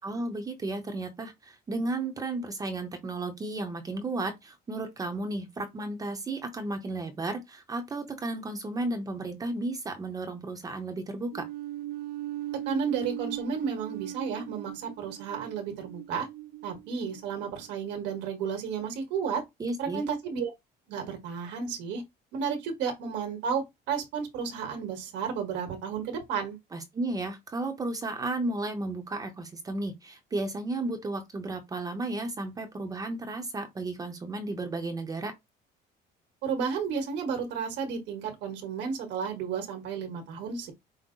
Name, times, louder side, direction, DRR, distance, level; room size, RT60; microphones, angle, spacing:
voice 1, 0.0-11.5 19.6-20.0 26.7-35.3, right 2 dB, 20° right, 0.7 m, -33 dB
sound 1, 11.3-17.7, right 14 dB, 60° right, 0.5 m, -38 dB
voice 2, 12.6-16.3 16.6-19.4 19.8-20.5 20.9-22.0 22.3-26.6 36.4-40.7, right 6 dB, 85° right, 1.4 m, -32 dB
5.5 x 2.0 x 3.7 m
cardioid pair, 160°, 18 cm